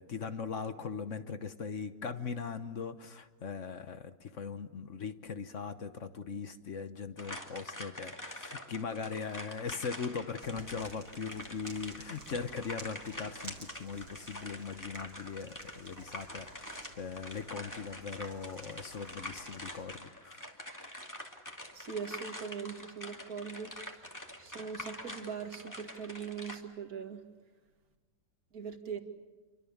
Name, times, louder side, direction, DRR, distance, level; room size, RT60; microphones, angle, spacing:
voice 1, 0.0-20.5, left 5 dB, 45° left, 11 dB, 1.1 m, -40 dB
sound 1, 7.2-26.6, left 1 dB, 10° left, 2.4 m, -46 dB
sound 2, 10.4-19.9, right 3 dB, 85° right, 4.0 m, -53 dB
voice 2, 21.7-23.8 24.4-27.2 28.5-29.0, right 6 dB, 50° right, 5 dB, 2.5 m, -41 dB
28.5 x 24.0 x 7.3 m, 1.2 s
omnidirectional pair, 2.1 m